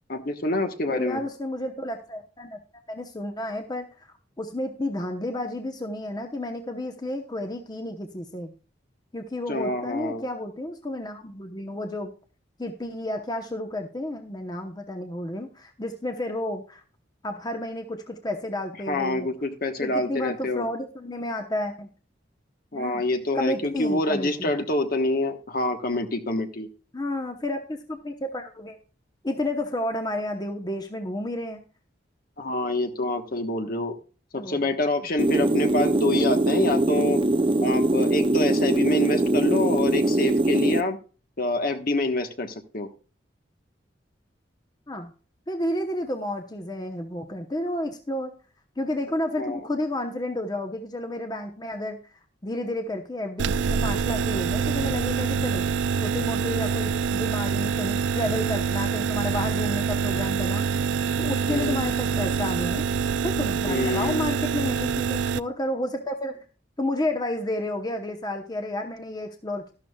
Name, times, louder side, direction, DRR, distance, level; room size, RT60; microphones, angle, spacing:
voice 1, 0.1-1.2 9.5-10.2 18.9-20.7 22.7-26.7 32.4-33.9 34.3-37.2 37.6-41.0 41.4-42.9 49.4-49.6 61.5-61.8 63.6-64.3, left 2 dB, 50° left, 7 dB, 1.2 m, -26 dB
voice 2, 0.9-2.6 2.9-3.9 4.4-8.5 9.1-12.1 12.6-16.8 17.2-19.3 19.8-21.9 22.7-23.0 23.3-24.5 26.9-28.8 29.2-31.6 34.4-34.8 35.3-35.5 44.9-45.1 45.5-48.3 48.8-52.0 52.4-55.6 56.0-60.6 61.2-62.9 63.2-66.4 66.8-69.7, left 1 dB, 20° left, 5 dB, 0.9 m, -31 dB
sound 1, 35.2-40.8, right 2 dB, 30° right, 0.5 m, -22 dB
sound 2, 53.4-65.4, right 6 dB, 75° right, 0.4 m, -26 dB
12.5 x 11.5 x 2.3 m, 0.36 s
head